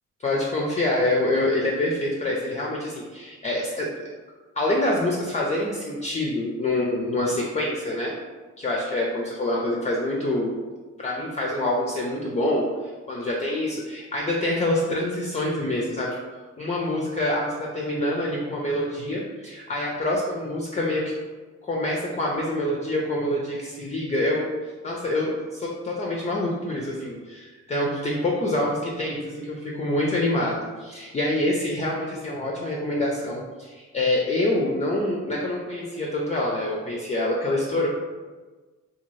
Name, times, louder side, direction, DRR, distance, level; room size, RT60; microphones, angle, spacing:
voice 1, 0.2-4.1 4.6-8.1 8.6-10.5 11.0-12.7 13.1-21.1 21.6-24.5 24.8-37.9, left 1 dB, 25° left, -2 dB, 0.4 m, -26 dB
2.6 x 2.3 x 3.0 m, 1.3 s
cardioid pair, 90°, 30 cm